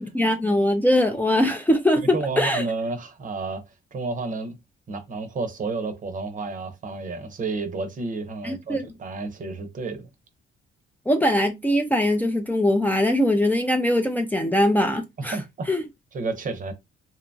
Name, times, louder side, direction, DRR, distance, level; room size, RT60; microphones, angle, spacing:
voice 1, 0.0-2.6 8.4-8.9 11.1-15.4 15.7-15.8, left 1 dB, 10° left, 0.4 m, -22 dB
voice 2, 2.0-3.6 3.9-4.6 4.9-10.1 15.3-15.7 16.1-16.7, right 3 dB, 40° right, 0.7 m, -31 dB
2.8 x 2.2 x 2.6 m
cardioid pair, 90°, 20 cm